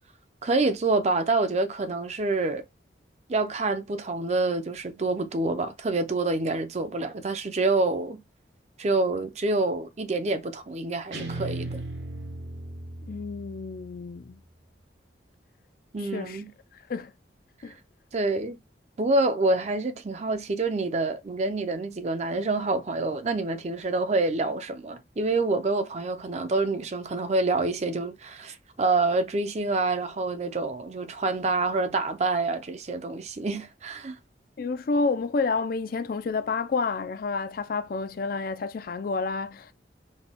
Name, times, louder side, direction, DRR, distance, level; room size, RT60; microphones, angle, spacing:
voice 1, 0.4-2.6 3.3-8.2 8.8-11.8 15.9-16.5 17.6-17.7 18.1-18.6 19.0-34.2, right 3 dB, 40° right, 0.5 m, -27 dB
Guitar, 11.1-14.3, right 2 dB, 80° right, 1.1 m, -37 dB
voice 2, 13.1-14.4 16.1-16.4 16.9-17.1 17.6-17.8 34.6-39.7, left 4 dB, 55° left, 0.4 m, -29 dB
4.2 x 2.2 x 3.5 m
head